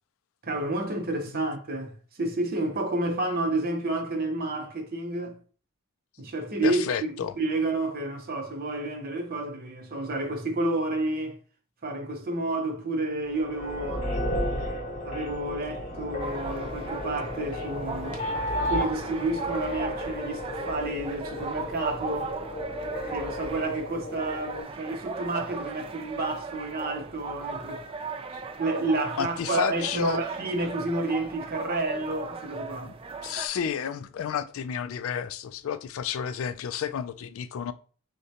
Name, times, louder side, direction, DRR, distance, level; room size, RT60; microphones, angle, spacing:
voice 1, 0.4-5.4 6.2-11.4 11.8-14.1 15.0-18.2 18.6-22.3 23.1-27.8 28.6-32.9, right 2 dB, 45° right, 0.8 m, -30 dB
voice 2, 6.6-7.3 28.3-28.4 29.2-30.2 32.9-33.0 33.2-37.7, left 7 dB, 70° left, 0.3 m, -31 dB
sound 1, 13.3-24.6, left 1 dB, 35° left, 0.8 m, -33 dB
sound 2, 16.2-33.5, right 4 dB, 25° right, 0.3 m, -38 dB
6.3 x 2.2 x 2.8 m
head